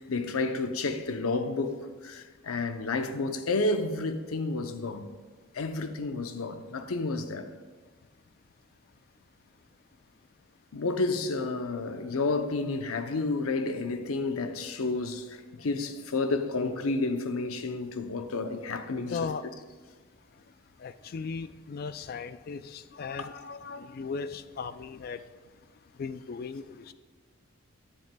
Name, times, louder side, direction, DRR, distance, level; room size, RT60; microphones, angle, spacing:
voice 1, 0.0-5.1 5.5-7.5 10.7-19.3 23.2-23.3, left 3 dB, 85° left, 0.6 m, -31 dB
voice 2, 19.1-19.4 20.8-25.2 26.0-26.9, left 5 dB, 45° left, 0.3 m, -37 dB
10.5 x 10.0 x 2.2 m
head